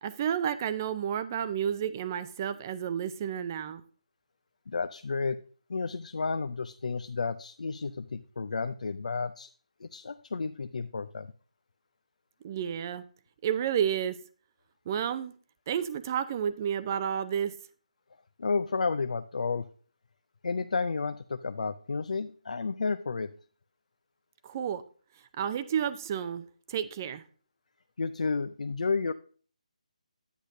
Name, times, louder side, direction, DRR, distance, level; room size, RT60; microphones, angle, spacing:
voice 1, 0.0-3.8 12.4-13.0 13.4-14.2 14.9-15.3 15.7-17.5 24.4-24.8 25.4-27.2, right 9 dB, 25° right, 12 dB, 0.4 m, -31 dB
voice 2, 4.7-5.4 5.7-9.5 9.8-11.3 18.4-19.7 20.4-23.3 28.0-29.1, left 4 dB, 70° left, 11 dB, 0.5 m, -31 dB
10.0 x 8.3 x 2.6 m, 0.41 s
figure-of-eight pair, 165°, 4 cm